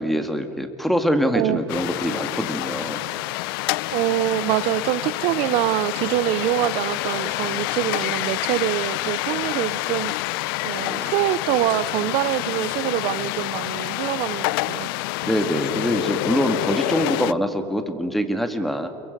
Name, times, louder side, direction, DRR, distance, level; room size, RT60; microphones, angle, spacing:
voice 1, 0.0-3.0 10.8-11.1 15.2-18.9, equal, ahead, 6 dB, 1.8 m, -24 dB
sound 1, 1.7-17.3, left 20 dB, 85° left, 0.4 m, -27 dB
voice 2, 3.9-10.1 10.6-14.9, right 16 dB, 60° right, 18 dB, 0.5 m, -24 dB
29.5 x 23.0 x 5.2 m, 2.6 s
supercardioid pair, 130°, 12 cm